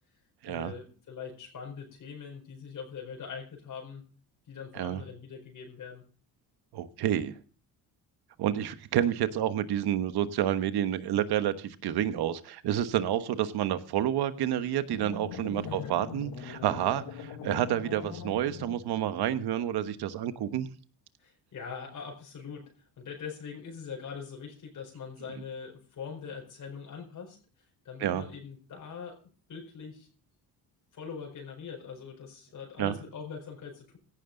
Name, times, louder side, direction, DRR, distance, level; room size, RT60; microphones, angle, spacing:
voice 1, 0.5-4.0 4.5-6.0 15.5-15.9 21.2-27.4 27.8-29.2 29.5-30.1 30.9-34.0, left 6 dB, 55° left, 1 dB, 4.6 m, -42 dB
voice 2, 6.7-7.4 8.4-20.7 28.0-28.2 32.8-33.0, right 11 dB, 75° right, 11 dB, 1.3 m, -29 dB
sound 1, 14.9-19.2, left 8 dB, 85° left, 1.9 m, -42 dB
17.0 x 11.0 x 3.9 m, 0.40 s
cardioid pair, 135°, 39 cm